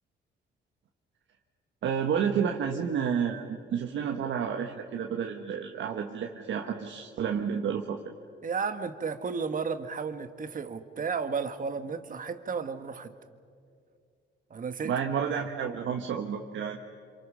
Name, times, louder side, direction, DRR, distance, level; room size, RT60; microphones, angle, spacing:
voice 1, 1.8-8.1 14.8-16.8, right 7 dB, 70° right, 3 dB, 1.5 m, -30 dB
voice 2, 8.4-13.1 14.5-14.9, right 5 dB, 45° right, 9 dB, 1.6 m, -33 dB
27.0 x 26.0 x 6.4 m, 2.2 s
cardioid pair, 90°, 20 cm